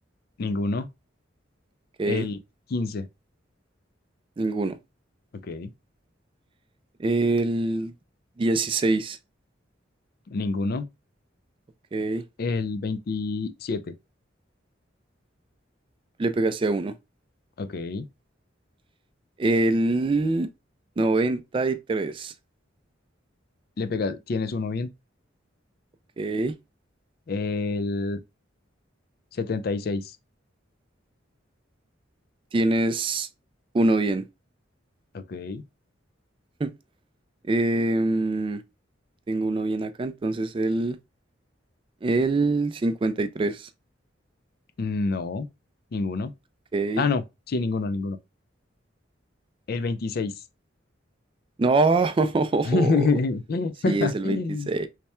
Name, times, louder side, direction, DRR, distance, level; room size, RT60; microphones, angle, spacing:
voice 1, 0.4-0.9 2.0-2.4 2.7-3.1 5.4-5.7 10.3-10.9 12.4-13.9 17.6-18.1 23.8-24.9 27.3-28.2 29.3-30.1 35.1-35.6 44.8-45.5 45.9-46.3 47.0-48.2 49.7-50.4 52.6-54.7, left 3 dB, 50° left, 0.4 m, -27 dB
voice 2, 4.4-4.8 7.0-7.9 8.4-9.2 11.9-12.2 16.2-16.9 19.4-20.5 21.0-22.3 26.2-26.5 32.5-33.3 33.7-34.3 36.6-36.7 37.5-38.6 39.3-41.0 42.0-43.7 46.7-47.1 51.6-53.1 53.9-54.4 54.7-54.9, right 2 dB, 25° right, 0.3 m, -24 dB
3.3 x 2.2 x 4.2 m
head